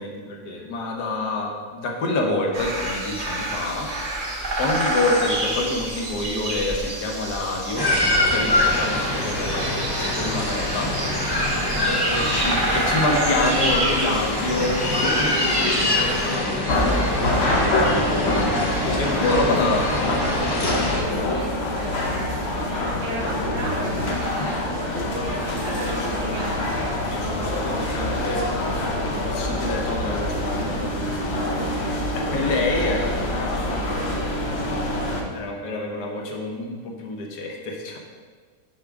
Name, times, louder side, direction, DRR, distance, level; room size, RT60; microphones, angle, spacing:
voice 1, 0.0-3.9 4.6-7.9 8.3-9.6 9.9-10.9 11.8-18.3 19.0-19.9 23.3-23.4 25.7-26.4 27.1-28.6 29.2-31.8 32.3-33.8 35.3-38.0, left 2 dB, 70° left, 1 dB, 1.4 m, -28 dB
sound 1, 2.5-16.4, right 1 dB, 35° right, 1.0 m, -29 dB
sound 2, 7.8-21.0, left 1 dB, 30° left, 0.4 m, -24 dB
voice 2, 11.5-12.5 18.9-26.8, right 2 dB, 70° right, -3 dB, 1.7 m, -36 dB
sound 3, 16.7-35.2, left 1 dB, 50° left, 0.9 m, -25 dB
6.9 x 3.5 x 5.0 m, 1.5 s
omnidirectional pair, 1.8 m